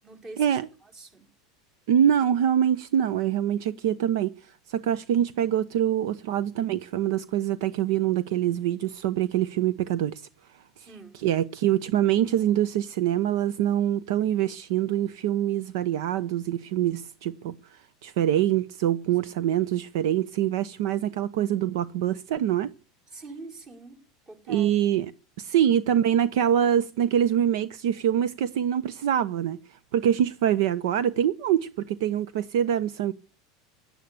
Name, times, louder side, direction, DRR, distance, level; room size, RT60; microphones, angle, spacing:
voice 1, 0.0-1.3 10.8-11.3 19.2-19.4 23.1-24.8, right 3 dB, 30° right, 5.0 m, -45 dB
voice 2, 1.9-4.3 4.7-10.2 11.2-17.6 18.0-22.7 24.5-25.1 25.4-29.6 29.9-33.1, right 10 dB, 70° right, 0.9 m, -24 dB
17.0 x 11.5 x 6.7 m
hypercardioid pair, 90°, 2 cm